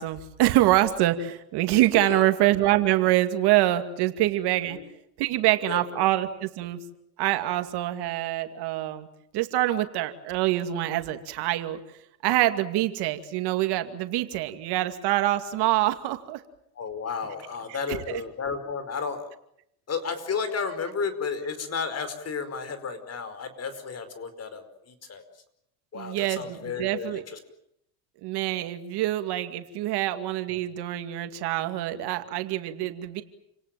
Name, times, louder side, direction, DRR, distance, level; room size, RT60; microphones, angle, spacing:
voice 1, 0.0-4.8 5.2-6.8 7.2-9.1 9.3-11.8 12.2-16.4 17.9-18.2 25.9-27.2 28.2-33.2, right 15 dB, 70° right, 8 dB, 2.5 m, -25 dB
voice 2, 1.9-2.3 4.7-4.8 5.7-6.0 16.7-19.3 19.9-25.4 25.9-27.4, left 5 dB, 35° left, 11 dB, 5.0 m, -33 dB
29.5 x 18.5 x 9.1 m, 0.76 s
supercardioid pair, 95°, 42 cm